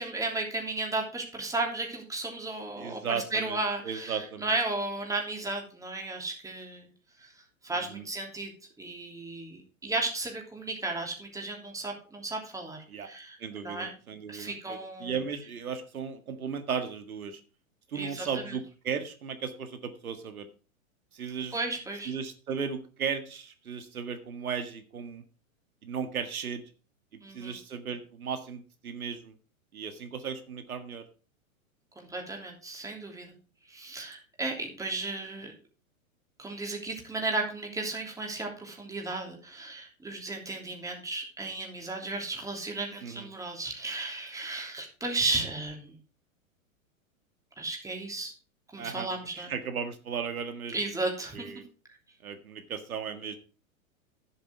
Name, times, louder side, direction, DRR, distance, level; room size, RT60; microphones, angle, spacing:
voice 1, 0.0-6.9 7.2-7.3 7.6-8.5 8.8-13.4 13.6-13.9 14.3-15.1 17.9-18.6 21.5-22.1 27.2-27.6 31.9-33.3 33.7-35.5 36.4-46.0 47.6-48.3 48.7-49.5 50.7-51.5, right 2 dB, 10° right, 1 dB, 3.1 m, -34 dB
voice 2, 2.8-4.5 7.8-8.0 12.9-13.1 13.4-17.4 17.9-20.5 21.1-21.6 22.1-25.2 25.8-26.6 27.1-29.3 29.7-31.0 43.0-43.3 48.8-49.1 49.4-50.8 51.3-51.6 52.2-53.4, right 6 dB, 90° right, 9 dB, 1.9 m, -36 dB
11.0 x 7.9 x 4.7 m, 0.36 s
hypercardioid pair, 125°, 42 cm